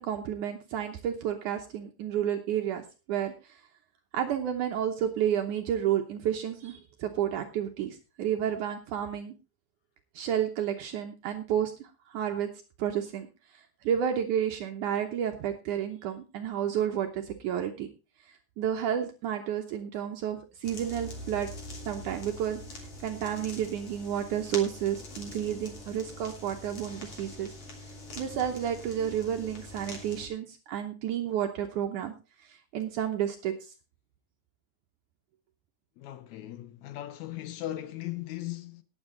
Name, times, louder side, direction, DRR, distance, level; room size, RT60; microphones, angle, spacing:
voice 1, 0.0-3.6 4.1-9.4 10.1-12.5 12.8-17.9 18.3-21.5 21.9-27.6 27.8-32.1 32.4-33.7, right 9 dB, 70° right, 2.3 m, -31 dB
sound 1, 20.6-30.3, left 2 dB, 45° left, 3.9 m, -43 dB
voice 2, 36.0-38.8, left 14 dB, 70° left, 1.8 m, -38 dB
19.0 x 7.4 x 3.8 m
omnidirectional pair, 4.0 m